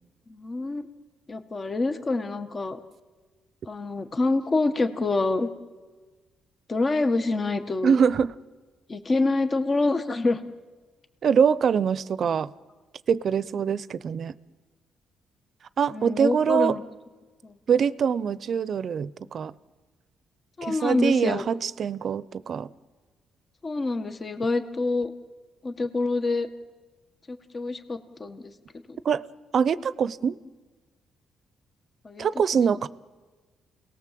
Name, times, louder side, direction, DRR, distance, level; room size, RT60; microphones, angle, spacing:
voice 1, 0.3-0.8 1.3-2.8 3.7-5.5 6.7-8.0 8.9-10.4 15.9-16.8 17.4-17.5 20.6-21.4 23.6-25.1 25.6-26.5 27.3-28.5 28.9-29.0 32.0-32.3, left 3 dB, 35° left, 8 dB, 1.6 m, -26 dB
voice 2, 7.8-8.3 11.2-12.5 13.1-14.3 15.8-16.8 17.7-19.5 20.6-22.7 29.0-29.2 29.5-30.4 32.2-32.9, right 7 dB, 55° right, 17 dB, 0.7 m, -24 dB
29.5 x 18.5 x 7.7 m, 1.4 s
cardioid pair, 90°, 0 cm